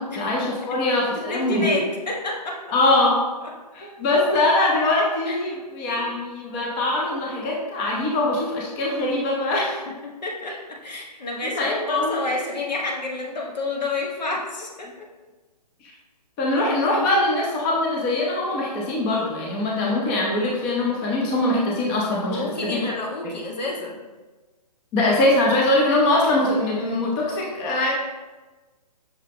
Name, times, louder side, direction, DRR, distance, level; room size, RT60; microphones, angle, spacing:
voice 1, 0.0-1.8 2.7-3.2 3.7-9.8 11.5-12.2 15.8-15.9 16.4-22.8 23.2-23.3 24.9-27.9, left 2 dB, 15° left, -3 dB, 0.4 m, -22 dB
voice 2, 1.3-2.6 5.3-5.4 10.2-15.1 22.1-24.0, left 2 dB, 80° left, -2 dB, 1.2 m, -29 dB
5.7 x 2.7 x 3.4 m, 1.2 s
hypercardioid pair, 145°, 21 cm